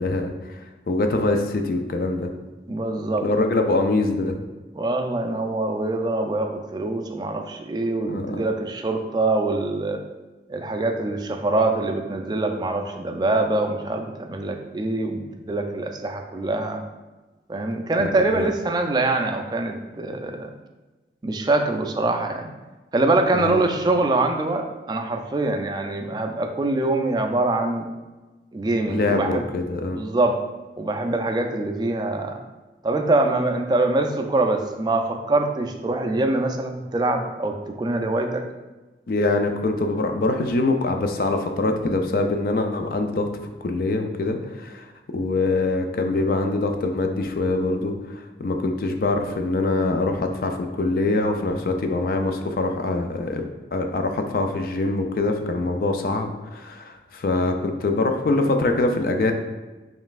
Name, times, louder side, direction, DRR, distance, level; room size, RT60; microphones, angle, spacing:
voice 1, 0.0-2.3 3.2-4.4 8.1-8.4 18.0-18.5 23.3-23.6 28.9-30.0 39.1-43.3 43.6-44.9 45.1-59.3, left 2 dB, 55° left, 5 dB, 0.4 m, -24 dB
voice 2, 2.7-3.2 4.7-10.0 10.5-16.8 17.5-20.5 21.2-22.5 22.9-27.8 28.5-29.4 29.9-30.4 30.8-32.4 32.8-38.4, right 2 dB, 25° right, 5 dB, 0.3 m, -24 dB
5.3 x 3.1 x 2.4 m, 1.2 s
head